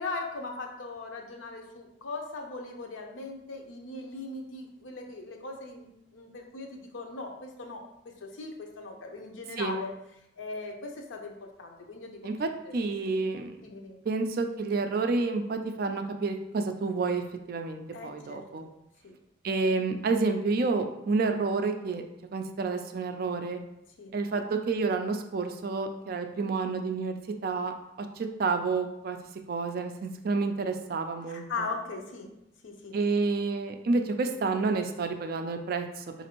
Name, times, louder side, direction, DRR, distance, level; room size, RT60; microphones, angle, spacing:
voice 1, 0.0-7.8 8.2-9.9 10.4-11.3 11.6-12.2 12.6-12.8 13.6-14.0 17.9-18.4 19.0-19.2 24.0-24.1 31.3-32.3 32.6-33.0, left 3 dB, 85° left, 3 dB, 0.6 m, -39 dB
voice 2, 12.2-13.6 14.1-18.6 19.4-22.0 22.3-23.6 24.1-27.7 28.2-29.2 29.5-31.4 32.9-36.0, right 3 dB, 50° right, 6 dB, 0.3 m, -29 dB
4.0 x 2.5 x 2.9 m, 0.84 s
head